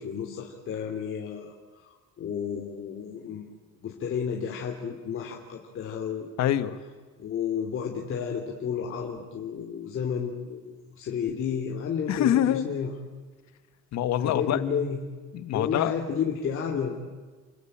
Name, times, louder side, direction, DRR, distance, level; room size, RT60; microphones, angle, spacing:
voice 1, 0.0-1.5 1.8-3.5 3.8-6.3 7.2-12.9 14.2-15.0 15.5-17.0, left 7 dB, 45° left, 1 dB, 3.0 m, -31 dB
voice 2, 6.4-6.8 12.1-12.6 13.9-14.6 15.3-15.9, left 11 dB, 60° left, 12 dB, 1.7 m, -25 dB
29.0 x 20.5 x 8.8 m, 1.4 s
cardioid pair, 140°, 31 cm